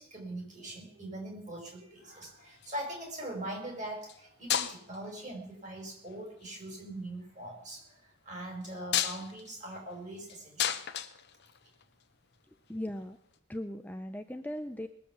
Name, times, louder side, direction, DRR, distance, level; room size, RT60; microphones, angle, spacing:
voice 1, 0.0-10.8, right 1 dB, 35° right, 1 dB, 5.1 m, -42 dB
sound 1, 2.1-2.9 4.0-4.2 4.5-5.1 6.1-6.5 8.6-12.0 13.3-13.4, left 10 dB, 55° left, 0.9 m, -34 dB
voice 2, 12.5-13.2 13.5-14.9, left 1 dB, 10° left, 6 dB, 0.5 m, -38 dB
20.5 x 7.6 x 7.0 m, 0.73 s
head